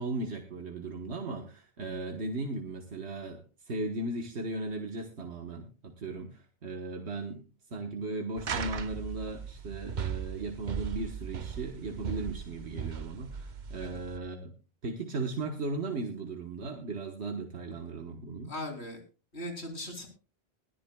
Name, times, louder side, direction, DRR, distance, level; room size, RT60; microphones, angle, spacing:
voice 1, 0.0-14.5 14.8-18.5, right 2 dB, 85° right, 3 dB, 1.6 m, -37 dB
sound 1, 8.4-14.2, right 6 dB, 50° right, 0.8 m, -38 dB
voice 2, 18.5-19.0 19.3-20.1, left 1 dB, 80° left, 2 dB, 3.8 m, -38 dB
21.0 x 13.0 x 2.3 m, 0.34 s
omnidirectional pair, 1.1 m